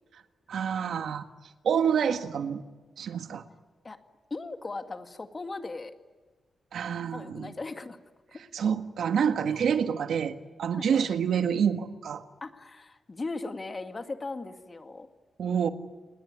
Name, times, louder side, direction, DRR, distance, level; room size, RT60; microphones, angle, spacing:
voice 1, 0.5-1.3 1.6-2.6 3.0-3.4 6.7-7.5 8.5-12.3 15.4-15.7, right 7 dB, 75° right, 8 dB, 1.7 m, -27 dB
voice 2, 4.3-5.9 7.1-8.0 8.3-8.4 9.5-10.3 10.7-11.1 12.4-15.1, left 3 dB, 30° left, 7 dB, 2.1 m, -38 dB
29.0 x 20.5 x 9.8 m, 1.4 s
wide cardioid pair, 115°, 0 cm